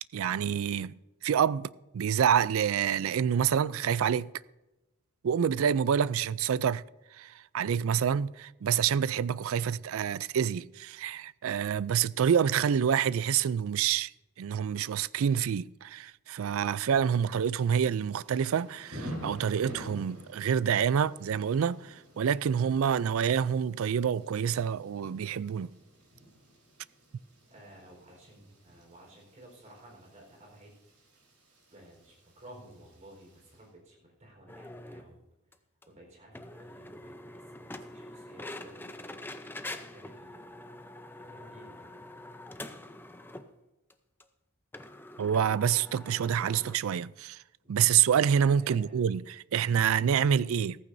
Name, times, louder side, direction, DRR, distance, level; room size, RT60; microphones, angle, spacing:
voice 1, 0.1-0.9 1.2-4.3 5.2-6.8 7.1-14.1 14.4-25.7 45.2-47.4 47.7-50.8, right 8 dB, 65° right, 0.3 m, -27 dB
Thunder / Rain, 16.8-33.6, equal, 90° right, 4.0 m, -49 dB
voice 2, 27.5-30.8 31.7-35.2 35.9-39.0 39.6-40.4 41.2-42.1 47.6-47.7 48.6-49.0, right 1 dB, 35° right, 4.3 m, -54 dB
sound 1, 34.5-35.1 35.5-35.6 35.8-35.9 36.3-43.5 43.9-44.0 44.2-44.3 44.7-46.8, left 1 dB, 10° left, 0.5 m, -45 dB
15.0 x 14.5 x 2.6 m
head